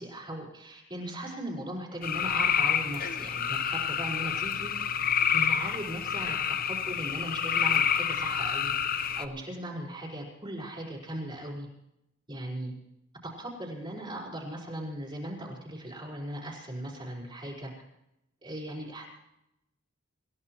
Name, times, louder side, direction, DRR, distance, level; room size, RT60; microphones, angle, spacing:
voice 1, 0.0-4.7 5.3-6.4 6.6-11.7 12.3-12.7 13.2-17.7 18.4-19.0, right 1 dB, 25° right, -4 dB, 5.0 m, -38 dB
sound 1, 2.0-9.3, left 8 dB, 50° left, 0.9 m, -28 dB
27.5 x 16.5 x 3.0 m, 0.83 s
head